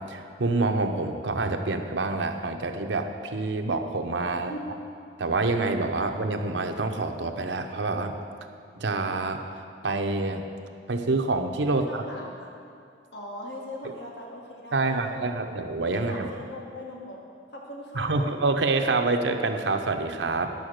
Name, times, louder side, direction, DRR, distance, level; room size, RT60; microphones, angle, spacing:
voice 1, 0.0-4.5 5.2-8.2 8.8-9.4 9.8-10.4 10.9-12.0 14.7-16.3 17.9-20.5, right 3 dB, 80° right, 5 dB, 0.8 m, -27 dB
voice 2, 4.3-4.7 11.7-12.5 13.1-15.4 15.9-17.2 17.5-18.4, left 1 dB, 70° left, -1 dB, 1.6 m, -40 dB
10.5 x 6.9 x 6.5 m, 2.4 s
head